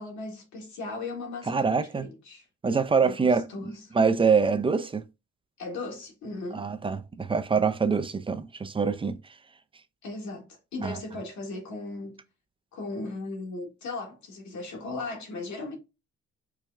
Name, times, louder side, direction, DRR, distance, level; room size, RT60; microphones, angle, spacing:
voice 1, 0.0-2.4 3.0-3.9 5.6-6.7 10.0-12.2 12.7-15.8, left 3 dB, 70° left, 1.5 m, -37 dB
voice 2, 1.5-2.1 2.6-5.0 6.5-9.2 10.8-11.0, right 5 dB, 20° right, 0.4 m, -25 dB
4.7 x 2.1 x 3.3 m
cardioid pair, 90°, 30 cm